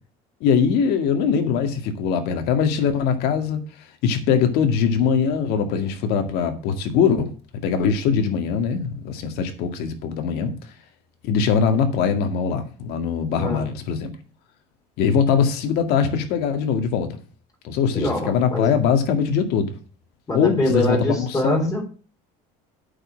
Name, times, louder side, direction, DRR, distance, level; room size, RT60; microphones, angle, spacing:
voice 1, 0.4-3.6 4.0-7.3 7.6-10.5 11.2-14.1 15.0-17.2 17.6-19.7 20.3-21.8, left 6 dB, 65° left, 2.1 m, -21 dB
voice 2, 17.9-18.7 20.3-21.8, left 1 dB, 20° left, 3.9 m, -24 dB
8.7 x 5.6 x 7.5 m
cardioid pair, 145°, 17 cm